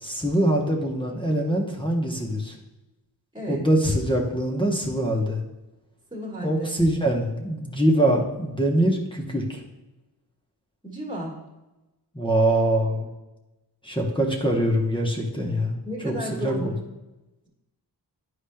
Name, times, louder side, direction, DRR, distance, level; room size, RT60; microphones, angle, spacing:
voice 1, 0.0-2.5 3.5-5.4 6.4-9.6 12.1-13.1 13.8-15.8 16.0-16.1 16.4-16.5, right 1 dB, 10° left, 0 dB, 0.8 m, -23 dB
voice 2, 3.3-3.6 6.1-6.7 10.8-11.4 15.8-16.8, equal, 10° right, -3 dB, 1.5 m, -32 dB
9.9 x 4.9 x 2.2 m, 1.0 s
wide cardioid pair, 105°, 40 cm